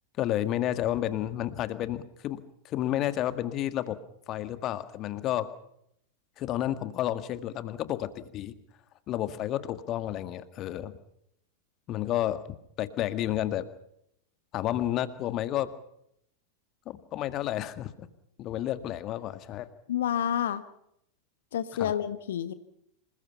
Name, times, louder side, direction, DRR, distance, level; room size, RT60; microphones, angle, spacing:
voice 1, 0.2-4.0 4.3-5.5 6.4-8.6 9.1-10.9 11.9-12.4 12.8-13.7 14.5-15.7 16.9-18.1 18.4-19.7 21.8-21.9, left 13 dB, 35° left, 12 dB, 1.8 m, -31 dB
voice 2, 19.9-20.6 21.5-22.5, left 10 dB, 60° left, 12 dB, 1.3 m, -29 dB
27.0 x 21.0 x 5.7 m, 0.75 s
figure-of-eight pair, 90°, 0 cm